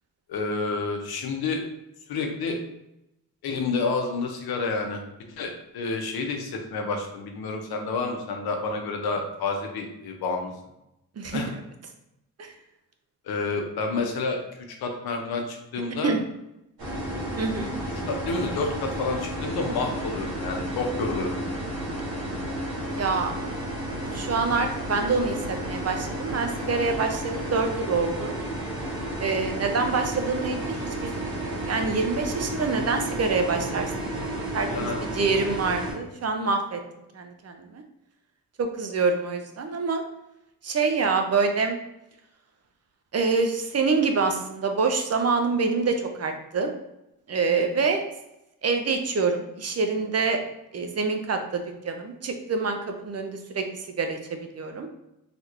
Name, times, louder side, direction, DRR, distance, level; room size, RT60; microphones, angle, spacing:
voice 1, 0.3-1.6 2.1-2.6 3.4-5.0 5.3-10.5 11.3-11.5 13.2-14.4 14.8-16.1 18.1-21.4 34.6-35.1, left 3 dB, 85° left, 3 dB, 0.7 m, -29 dB
sound 1, 16.8-35.9, right 1 dB, 85° right, 1.4 m, -32 dB
voice 2, 17.4-17.8 23.0-23.3 24.1-28.4 29.2-36.8 37.1-37.8 38.6-40.0 40.6-41.8 43.1-46.7 47.3-48.0 48.6-50.4 50.7-52.8 53.0-53.6 54.0-54.2 54.5-54.9, right 4 dB, 45° right, 5 dB, 0.6 m, -26 dB
3.4 x 2.8 x 2.5 m, 0.87 s
cardioid pair, 60°, 36 cm